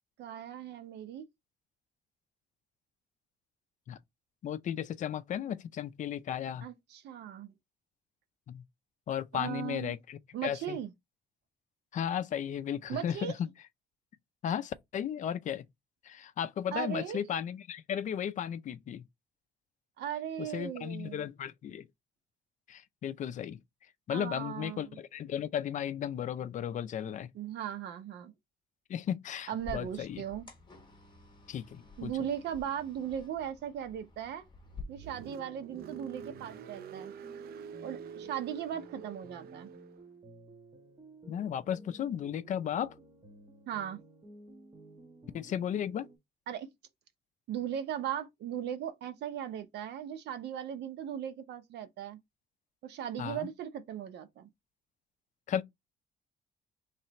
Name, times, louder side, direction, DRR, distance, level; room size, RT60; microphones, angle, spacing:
voice 1, 0.2-1.2 6.6-7.5 9.3-10.0 10.3-10.9 12.9-13.3 16.7-17.2 20.0-21.3 24.1-25.0 27.3-28.3 29.5-30.5 32.0-34.5 34.9-37.1 37.8-39.7 43.7-44.0 46.5-46.7 47.5-52.2 52.8-54.5, right 9 dB, 85° right, 0.8 m, -38 dB
voice 2, 4.4-6.7 8.5-8.6 9.1-10.8 11.9-13.5 14.4-15.7 16.0-19.0 20.4-21.9 22.7-23.6 24.1-27.3 28.9-30.2 31.5-32.1 41.3-42.9 45.3-46.1 53.2-53.5 55.5-55.6, left 9 dB, 45° left, 0.4 m, -35 dB
sound 1, 29.6-34.8, left 5 dB, 25° left, 1.3 m, -50 dB
Car, 34.6-40.1, right 7 dB, 65° right, 0.4 m, -47 dB
sound 2, 35.0-46.2, right 2 dB, 25° right, 1.0 m, -54 dB
3.3 x 2.9 x 4.2 m
cardioid pair, 125°, 17 cm